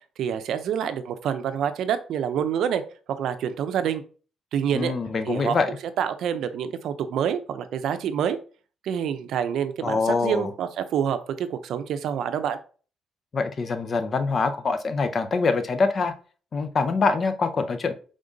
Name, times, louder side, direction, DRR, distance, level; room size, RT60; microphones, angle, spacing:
voice 1, 0.2-2.8 3.1-4.0 4.5-4.9 5.3-8.4 8.8-12.6, right 8 dB, 75° right, 0.5 m, -27 dB
voice 2, 4.7-5.7 9.8-10.5 13.3-16.1 16.5-17.9, left 4 dB, 45° left, 0.6 m, -24 dB
4.9 x 3.6 x 2.6 m
cardioid pair, 90°, 0 cm